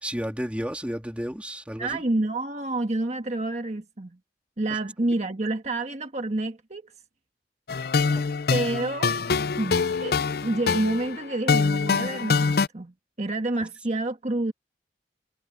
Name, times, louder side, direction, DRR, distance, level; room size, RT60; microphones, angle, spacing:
voice 1, 0.0-2.0 4.7-4.8 8.0-8.2, equal, 5° right, 2.6 m, -32 dB
voice 2, 1.8-4.2 4.6-6.9 8.5-9.1 9.6-14.5, right 2 dB, 40° right, 1.4 m, -28 dB
sound 1, 7.7-12.7, left 5 dB, 60° left, 0.5 m, -24 dB
head